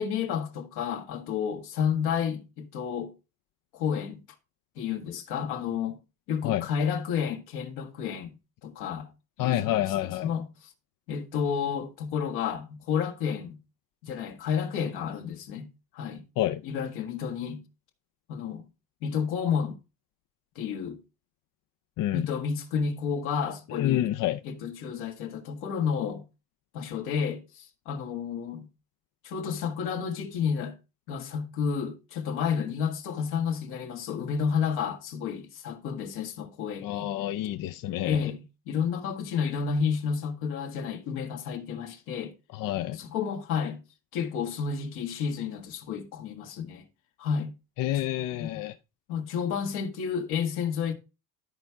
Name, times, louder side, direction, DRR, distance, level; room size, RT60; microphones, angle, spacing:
voice 1, 0.0-3.1 3.7-4.2 4.8-6.0 6.3-8.3 8.6-9.1 9.4-9.8 10.2-10.4 11.1-13.6 14.0-15.7 15.9-16.2 16.6-17.6 18.3-18.6 19.0-19.8 20.5-21.0 22.1-24.1 24.4-26.2 26.7-28.7 29.2-30.8 31.1-37.1 38.0-42.3 42.9-43.8 44.1-46.8 47.2-47.5 48.4-48.6 49.1-50.9, left 7 dB, 85° left, 1.8 m, -31 dB
voice 2, 9.4-10.3 16.4-16.6 22.0-22.3 23.7-24.4 36.8-38.3 42.5-43.0 47.8-48.8, left 13 dB, 65° left, 0.6 m, -28 dB
13.0 x 4.5 x 3.5 m
supercardioid pair, 90°, 37 cm